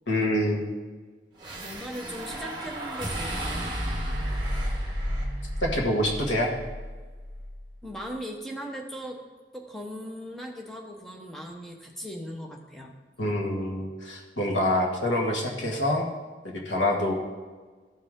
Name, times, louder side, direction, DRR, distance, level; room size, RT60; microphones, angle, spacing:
voice 1, 0.1-0.7 5.6-6.5 13.2-16.1 16.4-17.1, left 1 dB, 90° left, -1 dB, 1.6 m, -26 dB
sound 1, 1.4-7.8, equal, 25° right, 1.4 m, -32 dB
voice 2, 1.6-3.7 7.8-9.2 9.5-12.9, equal, ahead, 0 dB, 0.9 m, -38 dB
13.5 x 4.8 x 3.7 m, 1.4 s
head